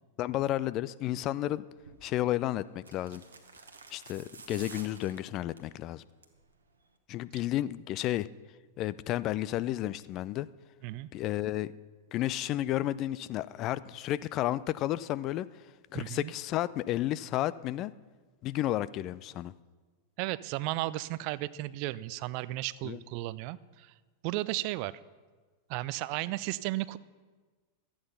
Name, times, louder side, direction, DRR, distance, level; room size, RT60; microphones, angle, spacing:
voice 1, 0.2-1.6 2.0-3.2 3.9-6.0 7.1-8.3 8.8-10.5 11.1-11.7 12.1-15.5 15.9-17.9 18.4-19.5 22.8-23.0, left 14 dB, 35° left, 17 dB, 0.3 m, -32 dB
sound 1, 1.8-2.0 2.8-5.7 6.1-6.4 6.7-6.8, right 4 dB, 75° right, 1.1 m, -50 dB
voice 2, 15.9-16.3 20.2-23.9 24.2-25.0 25.7-27.0, right 17 dB, 45° right, 18 dB, 0.4 m, -34 dB
12.5 x 8.7 x 5.6 m, 1.4 s
figure-of-eight pair, 90°, 0 cm